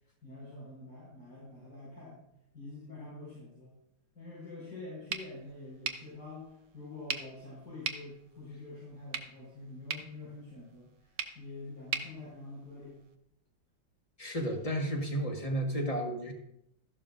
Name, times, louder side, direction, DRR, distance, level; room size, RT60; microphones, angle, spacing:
voice 1, 0.2-2.2 2.5-3.8 4.1-13.0, left 2 dB, 70° left, -9 dB, 5.8 m, -46 dB
sound 1, 5.1-13.1, right 6 dB, 50° right, 1.0 m, -42 dB
voice 2, 14.2-16.3, equal, 20° left, 1 dB, 1.4 m, -32 dB
13.5 x 11.5 x 2.6 m, 0.78 s
omnidirectional pair, 2.0 m